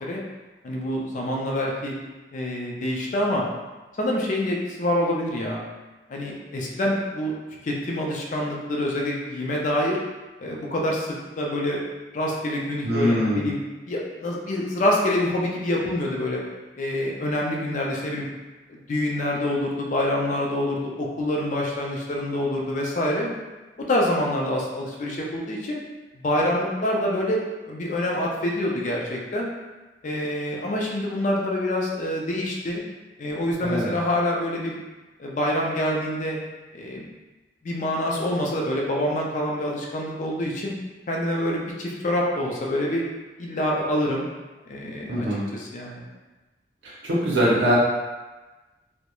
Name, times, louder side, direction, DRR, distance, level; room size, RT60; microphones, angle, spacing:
voice 1, 0.6-1.9 2.3-3.5 4.0-5.6 6.1-7.3 7.6-10.0 10.4-11.8 12.1-13.6 13.9-16.4 16.7-18.3 18.7-23.3 23.9-25.8 26.2-29.5 30.0-32.8 33.2-34.8 35.2-36.4 36.7-37.1 37.6-40.7 41.1-43.0 43.4-44.3 44.7-45.3 45.5-46.0, left 1 dB, 45° left, -2 dB, 0.4 m, -26 dB
voice 2, 12.8-13.4 33.6-33.9 45.1-45.4 47.0-47.8, equal, 80° right, -6 dB, 0.6 m, -22 dB
2.3 x 2.1 x 2.9 m, 1.2 s
head